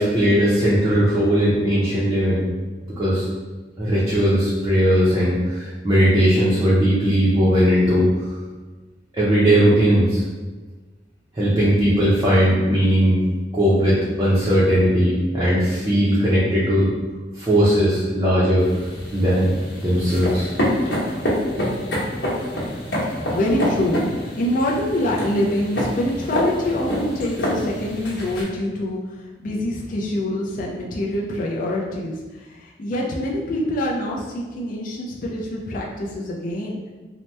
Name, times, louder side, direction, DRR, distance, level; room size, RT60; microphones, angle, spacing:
voice 1, 0.0-2.4 3.0-3.3 3.8-8.3 9.1-10.2 11.3-13.2 13.5-16.9 17.4-18.7 19.1-19.5 19.8-20.5, equal, 20° right, -10 dB, 0.5 m, -18 dB
sound 1, 18.6-28.4, equal, 80° left, 1.0 m, -26 dB
voice 2, 23.3-36.9, left 1 dB, 45° left, -2 dB, 0.4 m, -25 dB
2.8 x 2.1 x 3.2 m, 1.3 s
head